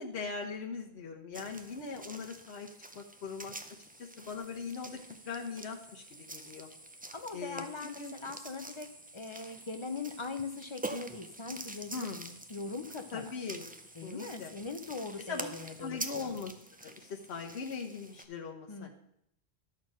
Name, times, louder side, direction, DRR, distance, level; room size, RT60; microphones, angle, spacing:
voice 1, 0.0-2.7 2.9-3.5 4.0-5.0 5.2-6.7 7.3-7.7 8.0-8.1 11.9-12.3 13.1-13.7 14.0-14.5 15.3-15.5 15.8-16.5 16.8-18.9, left 5 dB, 80° left, 1 dB, 1.2 m, -40 dB
sound 1, 1.3-18.2, right 2 dB, 15° right, 0.3 m, -47 dB
voice 2, 7.1-12.1 12.5-13.3 14.0-16.3 18.7-18.9, left 4 dB, 35° left, 7 dB, 0.6 m, -41 dB
11.5 x 4.4 x 6.2 m, 0.73 s
omnidirectional pair, 1.1 m